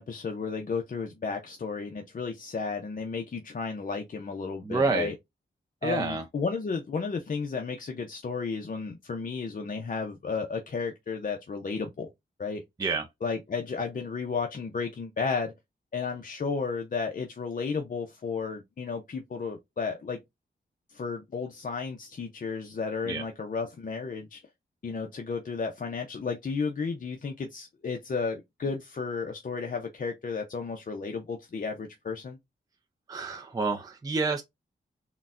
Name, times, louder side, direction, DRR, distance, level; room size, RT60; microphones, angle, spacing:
voice 1, 0.0-5.1 5.8-12.1 12.4-12.6 13.2-15.5 15.9-20.2 20.9-24.4 24.8-32.4, left 5 dB, 45° left, 0.6 m, -33 dB
voice 2, 4.6-5.1 5.8-6.2 12.8-13.1 23.1-23.2 33.1-34.4, right 3 dB, 20° right, 0.5 m, -28 dB
3.9 x 2.2 x 2.4 m
cardioid pair, 80°, 20 cm